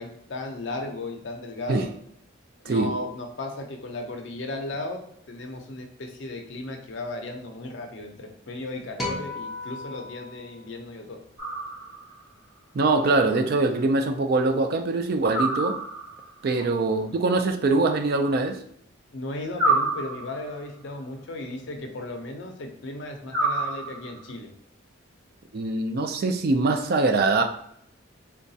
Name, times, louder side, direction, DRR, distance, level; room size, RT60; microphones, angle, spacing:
voice 1, 0.0-1.9 2.6-5.0 5.3-11.2 19.1-24.5, left 2 dB, 60° left, 4 dB, 0.5 m, -35 dB
voice 2, 2.6-3.0 12.7-15.7 16.4-18.6 25.5-27.4, right 3 dB, 45° right, 5 dB, 0.3 m, -23 dB
sound 1, 9.0-11.5, left 2 dB, ahead, 0.6 m, -36 dB
sound 2, 11.4-12.2 15.3-16.3 19.5-20.6 23.3-24.3, right 2 dB, 25° right, 1.5 m, -27 dB
3.8 x 2.2 x 2.7 m, 0.71 s
head